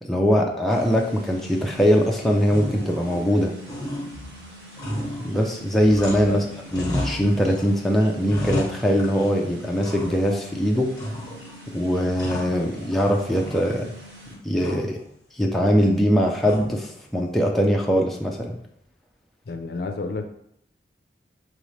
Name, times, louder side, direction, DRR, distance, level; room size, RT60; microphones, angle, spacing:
voice 1, 0.0-3.5 5.2-6.4 6.7-10.9 11.7-13.9 14.4-15.0 15.3-18.6, equal, ahead, -1 dB, 0.4 m, -21 dB
sound 1, 0.7-14.4, right 1 dB, 75° right, 0.9 m, -45 dB
sound 2, 1.5-2.1 2.4-3.4 3.7-6.4 6.7-7.7 8.0-9.4 9.8-10.5 10.9-11.6 11.9-13.0 13.3-14.0 14.6-15.0 16.4-16.9, left 1 dB, 20° left, 1.1 m, -33 dB
voice 2, 19.5-20.3, left 3 dB, 60° left, 5 dB, 0.5 m, -30 dB
5.2 x 3.1 x 3.2 m, 0.74 s
head